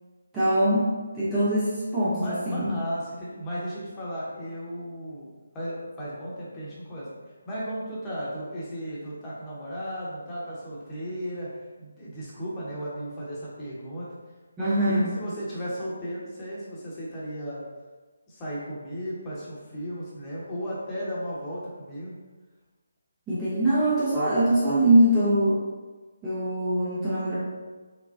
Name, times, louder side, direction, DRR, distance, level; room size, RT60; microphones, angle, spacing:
voice 1, 0.3-0.9 1.1-2.7 14.6-15.1 23.3-25.6 26.2-27.4, right 1 dB, 10° right, -11 dB, 0.6 m, -22 dB
voice 2, 2.2-5.3 5.5-7.1 7.4-11.5 11.8-14.1 14.9-17.6 18.3-22.1, equal, 15° left, -8 dB, 0.9 m, -35 dB
4.3 x 2.1 x 2.6 m, 1.3 s
figure-of-eight pair, 150°, 0 cm